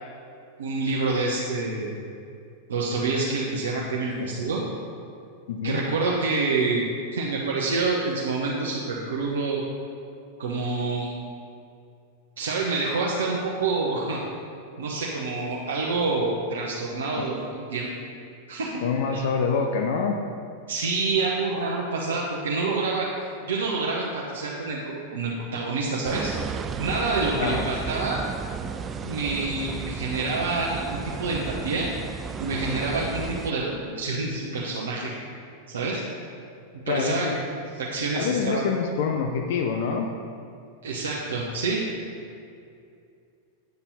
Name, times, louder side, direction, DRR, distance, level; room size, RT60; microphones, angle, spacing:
voice 1, 0.6-1.9 2.7-4.6 5.6-9.6 10.4-11.1 12.4-14.2 14.8-17.9 18.5-18.8 19.1-19.2 20.7-23.1 23.5-26.3 26.8-28.2 29.0-31.9 32.4-35.1 35.7-36.0 36.9-37.3 37.8-38.6 40.8-41.8, right 3 dB, 65° right, -4 dB, 1.0 m, -27 dB
voice 2, 5.5-5.8 17.2-17.3 18.8-20.2 27.3-27.7 36.8-37.4 38.1-40.1, left 5 dB, 55° left, 3 dB, 0.6 m, -26 dB
sound 1, 26.0-33.5, right 6 dB, 25° right, 0.4 m, -33 dB
9.4 x 7.1 x 4.1 m, 2.5 s
figure-of-eight pair, 90°, 0 cm